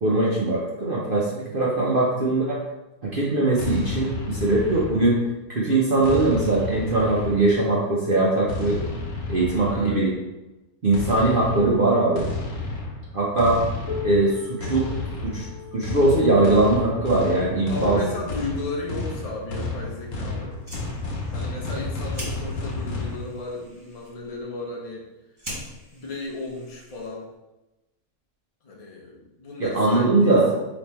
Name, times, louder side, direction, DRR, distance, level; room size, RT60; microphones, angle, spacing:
voice 1, 0.0-2.6 3.0-5.2 5.5-8.9 9.3-10.1 10.8-12.3 13.1-13.6 14.0-14.8 15.2-18.0 29.6-30.5, right 2 dB, 50° right, -6 dB, 0.7 m, -21 dB
sound 1, 3.6-5.3 6.0-7.8 8.5-10.1 10.9-23.2, left 2 dB, 70° left, 1.2 m, -31 dB
voice 2, 9.7-10.0 14.3-14.5 17.7-20.6 21.3-25.1 25.9-27.3 28.6-30.6, left 2 dB, 35° left, -1 dB, 0.6 m, -34 dB
Piano, 13.9-19.2 20.0-20.1 20.6-20.7 21.5-21.6 22.6-22.7, left 6 dB, 5° left, 0.9 m, -41 dB
Fire, 20.5-27.4, equal, 20° right, 1.1 m, -43 dB
3.5 x 3.0 x 4.2 m, 1.0 s
omnidirectional pair, 1.6 m